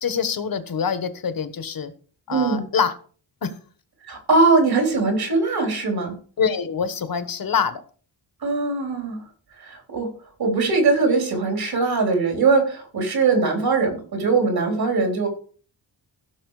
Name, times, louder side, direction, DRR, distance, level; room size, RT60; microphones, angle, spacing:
voice 1, 0.0-1.9 2.3-2.9 3.4-3.5 6.4-7.8, left 6 dB, 50° left, 11 dB, 1.4 m, -25 dB
voice 2, 2.3-2.6 4.0-6.1 8.4-9.2 9.6-10.1 10.4-15.3, right 4 dB, 55° right, 3 dB, 4.1 m, -21 dB
16.0 x 6.3 x 4.9 m, 0.43 s
wide cardioid pair, 155°, 43 cm